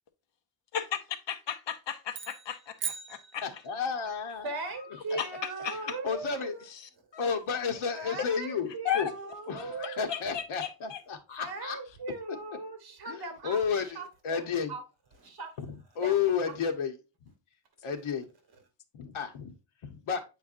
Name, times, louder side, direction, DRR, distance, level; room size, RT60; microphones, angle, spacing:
voice 1, 1.3-3.5 5.2-5.8 7.1-7.3 8.2-8.3 8.8-9.1 10.1-11.0, left 9 dB, 60° left, 0.9 m, -34 dB
sound 1, 2.1-4.0, right 6 dB, 25° right, 0.5 m, -40 dB
voice 2, 3.4-4.5 5.1-5.2 5.8-6.5 7.2-9.1 9.5-11.8 12.3-12.4 13.1-14.7 15.6-16.9 17.8-18.3 18.9-19.5 19.8-20.2, left 6 dB, 75° left, 1.3 m, -32 dB
voice 3, 4.4-6.6 7.9-10.0 11.4-13.6 13.8-14.8 15.2-15.6 16.0-16.5, right 3 dB, 50° right, 1.8 m, -39 dB
8.2 x 4.6 x 2.6 m
wide cardioid pair, 170°, 49 cm